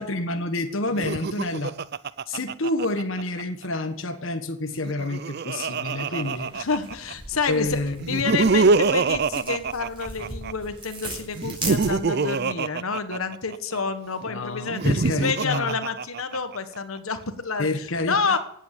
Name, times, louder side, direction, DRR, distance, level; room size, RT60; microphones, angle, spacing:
voice 1, 0.0-1.7 2.3-6.5 7.5-8.2 14.3-15.8 17.6-18.4, left 2 dB, 70° left, 7 dB, 1.4 m, -28 dB
Laughter, 0.9-3.4 4.7-7.1 8.0-10.5 11.4-13.8 14.6-16.6, right 4 dB, 50° right, 0.5 m, -25 dB
sound 1, 6.2-12.3, right 2 dB, 25° right, 6.2 m, -39 dB
voice 2, 6.5-7.8 8.1-18.4, left 4 dB, 85° left, 9 dB, 1.5 m, -29 dB
17.0 x 8.3 x 8.2 m, 0.74 s
head